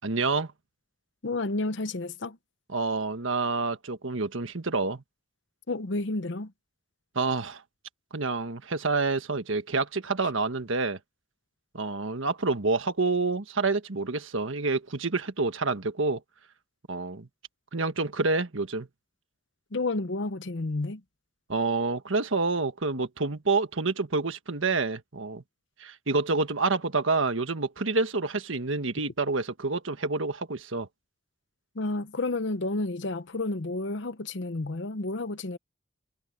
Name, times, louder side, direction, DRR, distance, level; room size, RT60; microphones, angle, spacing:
voice 1, 0.0-0.5 2.7-5.0 7.1-7.6 8.1-11.0 11.7-16.2 16.9-17.3 17.7-18.9 21.5-25.4 25.8-30.9, right 3 dB, 85° right, 1.5 m, -28 dB
voice 2, 1.2-2.4 5.7-6.5 19.7-21.0 31.7-35.6, left 2 dB, 65° left, 0.8 m, -31 dB
head